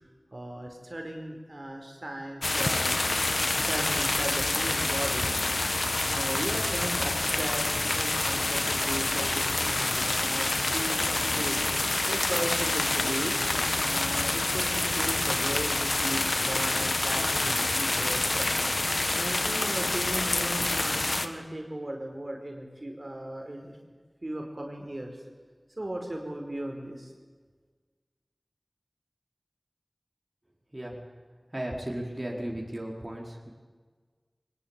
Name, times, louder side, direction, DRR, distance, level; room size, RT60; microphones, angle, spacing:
voice 1, 0.3-3.0 3.6-5.3 6.1-7.6 7.9-11.6 12.1-13.4 13.8-18.5 19.1-23.7 24.2-25.1 25.8-27.1, right 1 dB, 45° right, 2 dB, 4.8 m, -37 dB
sound 1, 2.4-21.3, left 2 dB, 65° left, 1.7 m, -27 dB
voice 2, 31.5-33.5, right 1 dB, 30° right, -1 dB, 4.7 m, -35 dB
23.0 x 21.0 x 9.0 m, 1.5 s
wide cardioid pair, 45°, 0 cm